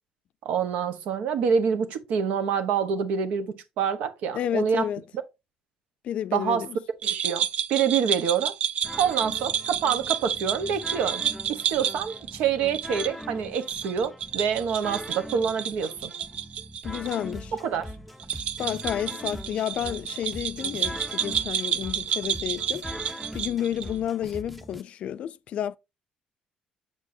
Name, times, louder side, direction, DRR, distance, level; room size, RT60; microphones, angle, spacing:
voice 1, 0.4-4.9 6.3-6.6 7.0-8.5 9.0-16.1 17.6-17.9, right 7 dB, 75° right, 1.1 m, -26 dB
voice 2, 4.3-5.0 6.0-6.8 16.8-17.5 18.6-25.8, left 10 dB, 55° left, 0.4 m, -31 dB
sound 1, 7.0-17.2 17.4-17.5 18.2-24.0, right 9 dB, 55° right, 0.5 m, -30 dB
sound 2, 8.8-24.8, equal, ahead, 0.5 m, -41 dB
7.4 x 6.8 x 2.7 m
cardioid pair, 155°, 2 cm